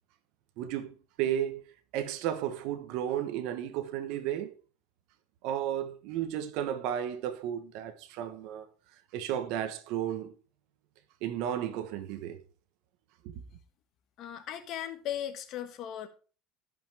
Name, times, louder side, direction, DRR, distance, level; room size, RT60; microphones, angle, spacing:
voice 1, 0.6-1.6 1.9-4.5 5.4-8.7 9.1-10.3 11.2-12.4 13.2-13.4, right 10 dB, 65° right, 1.0 m, -33 dB
voice 2, 14.2-16.1, left 10 dB, 50° left, 1.4 m, -37 dB
13.5 x 5.5 x 3.4 m
supercardioid pair, 130°, 0 cm